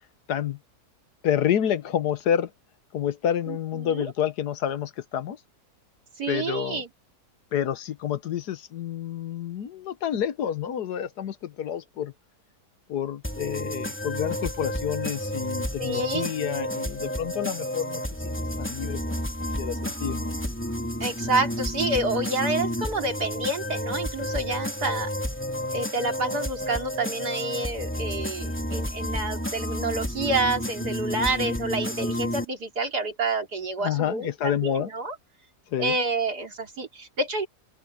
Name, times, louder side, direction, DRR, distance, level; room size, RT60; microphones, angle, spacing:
voice 1, 0.3-0.6 1.2-2.5 2.9-5.4 6.3-6.8 7.5-12.1 12.9-19.2 19.6-20.4 33.8-34.9 35.7-36.0, left 9 dB, 80° left, 1.5 m, -29 dB
voice 2, 3.5-4.1 6.2-6.9 15.8-16.3 21.0-25.1 25.7-35.2 35.8-37.5, right 2 dB, 80° right, 3.9 m, -28 dB
sound 1, 13.2-32.4, equal, 5° left, 3.3 m, -31 dB
open air
omnidirectional pair, 1.7 m